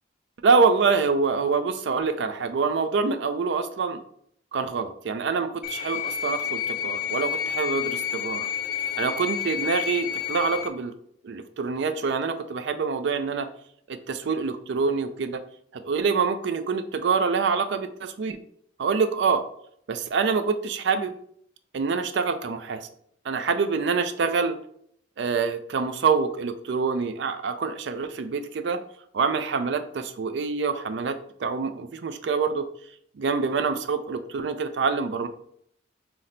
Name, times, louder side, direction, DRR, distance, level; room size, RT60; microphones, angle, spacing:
voice 1, 0.4-4.0 4.5-8.5 9.0-10.9 11.2-13.5 13.9-15.4 15.7-18.4 18.8-19.5 19.9-21.1 21.7-22.9 23.2-24.6 25.2-28.8 29.1-32.7 33.2-35.3, right 5 dB, 70° right, 8 dB, 0.4 m, -26 dB
sound 1, 5.6-10.7, left 9 dB, 50° left, 0.5 m, -30 dB
5.7 x 2.1 x 3.8 m, 0.67 s
head